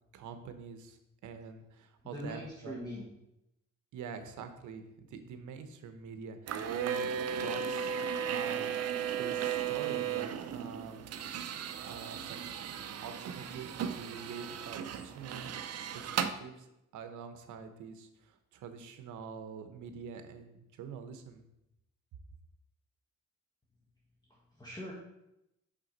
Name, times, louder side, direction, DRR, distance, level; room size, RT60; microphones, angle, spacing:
voice 1, 0.1-2.8 3.9-8.0 8.3-11.0 11.8-12.5 13.0-15.5 15.9-21.4, right 6 dB, 80° right, 8 dB, 0.9 m, -46 dB
voice 2, 2.0-3.0 24.2-24.9, equal, 15° left, -5 dB, 1.5 m, -42 dB
sound 1, 6.5-16.3, right 8 dB, 55° right, 0.6 m, -35 dB
6.2 x 5.9 x 4.0 m, 0.87 s
cardioid pair, 90°, 30 cm